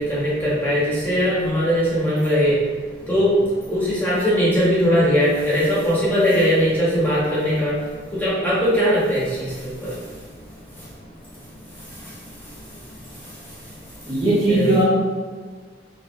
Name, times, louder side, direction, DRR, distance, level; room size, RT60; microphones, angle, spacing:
voice 1, 0.0-2.5 3.1-3.3 3.7-7.7 8.2-9.5 9.8-9.9 14.5-14.8, equal, 10° left, -9 dB, 1.1 m, -20 dB
voice 2, 14.1-14.8, right 1 dB, 20° right, -10 dB, 0.8 m, -18 dB
4.0 x 2.7 x 2.5 m, 1.5 s
head